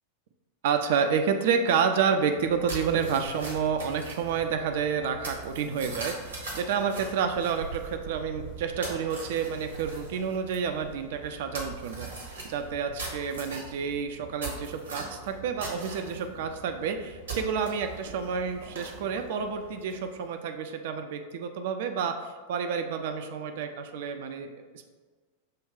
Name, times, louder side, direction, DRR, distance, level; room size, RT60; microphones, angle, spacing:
voice 1, 0.6-12.1 12.4-24.5, right 6 dB, 55° right, 6 dB, 0.3 m, -29 dB
sound 1, 2.3-20.2, right 3 dB, 70° right, 1.1 m, -41 dB
6.4 x 2.2 x 3.6 m, 1.4 s
figure-of-eight pair, 90°, 0 cm